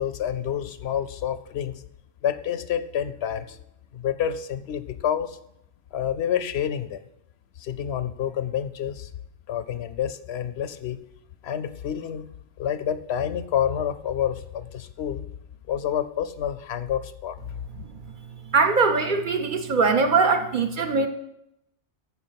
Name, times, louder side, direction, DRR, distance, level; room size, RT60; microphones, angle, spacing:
voice 1, 0.0-1.8 2.2-3.6 3.9-5.4 5.9-7.0 7.6-9.1 9.5-11.0 11.4-12.2 12.6-15.3 15.7-17.4, left 9 dB, 70° left, 12 dB, 0.8 m, -28 dB
voice 2, 18.5-21.1, right 4 dB, 50° right, 7 dB, 0.7 m, -21 dB
14.0 x 4.8 x 5.7 m, 0.80 s
omnidirectional pair, 1.2 m